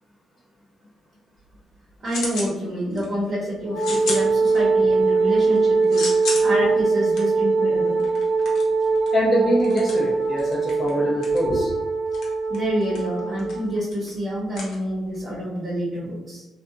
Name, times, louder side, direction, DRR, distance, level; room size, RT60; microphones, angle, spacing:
sound 1, 1.4-2.6 2.9-3.3 3.8-4.9 5.3-15.4, left 3 dB, 75° left, 0.8 m, -35 dB
voice 1, 2.0-8.0 12.5-16.4, equal, 45° right, -8 dB, 0.9 m, -27 dB
Wind instrument woodwind instrument, 3.7-13.7, right 4 dB, 15° right, 1.1 m, -21 dB
voice 2, 9.1-11.7, equal, 30° left, -6 dB, 0.6 m, -23 dB
2.6 x 2.2 x 2.5 m, 1.0 s
cardioid pair, 95°, 0 cm